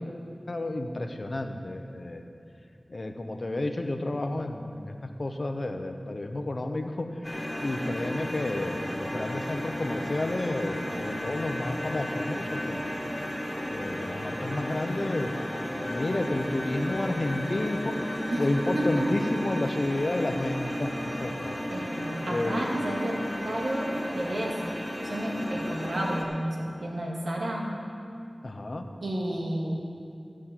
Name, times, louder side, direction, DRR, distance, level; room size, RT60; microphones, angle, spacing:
voice 1, 0.5-2.2 2.9-4.9 5.2-7.1 7.6-12.9 13.7-15.4 15.8-20.9 21.2-21.5 21.9-22.7 28.4-28.8, left 2 dB, 55° left, 5 dB, 0.9 m, -31 dB
sound 1, 7.2-26.2, equal, 10° left, 1.4 m, -34 dB
voice 2, 18.7-19.1 21.7-24.6 25.0-27.7 29.0-29.8, right 1 dB, 85° right, -2 dB, 1.9 m, -31 dB
14.0 x 6.4 x 7.4 m, 2.5 s
wide cardioid pair, 65°, 0 cm